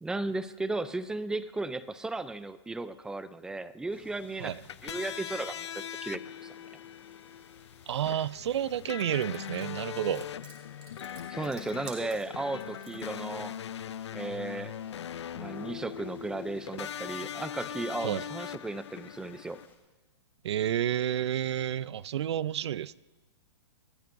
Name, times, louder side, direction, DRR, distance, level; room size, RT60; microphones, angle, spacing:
voice 1, 0.0-4.6 4.8-6.6 11.3-13.5 14.1-14.7 15.3-19.6, right 2 dB, 5° right, 0.4 m, -35 dB
sound 1, 3.9-19.8, left 4 dB, 15° left, 3.4 m, -61 dB
sound 2, 4.5-19.7, left 9 dB, 85° left, 0.4 m, -41 dB
voice 2, 7.9-10.3 18.0-18.2 20.4-23.0, right 10 dB, 80° right, 0.4 m, -30 dB
sound 3, 9.0-13.2, right 6 dB, 25° right, 4.1 m, -51 dB
28.0 x 14.0 x 2.6 m
hypercardioid pair, 140°, 14 cm